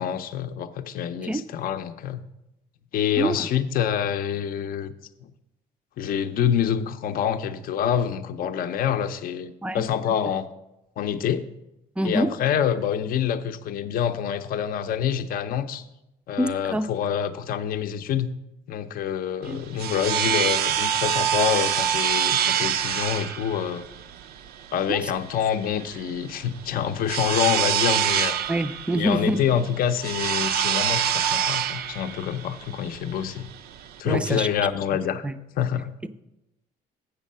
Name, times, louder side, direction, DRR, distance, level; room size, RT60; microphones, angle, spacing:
voice 1, 0.0-2.2 2.9-4.9 5.2-5.3 6.0-10.5 11.0-11.4 12.0-15.8 16.3-18.3 18.7-23.9 24.7-28.4 28.9-33.5 34.0-35.3 35.6-35.9, left 9 dB, 60° left, 9 dB, 0.6 m, -26 dB
voice 2, 3.2-3.5 9.6-9.8 12.0-12.4 16.4-16.9 19.5-19.6 24.9-25.0 28.5-29.4 34.0-34.5 35.2-35.4 36.0-36.1, right 1 dB, 5° right, 11 dB, 0.4 m, -25 dB
sound 1, 19.4-34.0, right 9 dB, 70° right, 0.4 m, -26 dB
8.1 x 6.4 x 5.4 m, 0.89 s
cardioid pair, 110°, 17 cm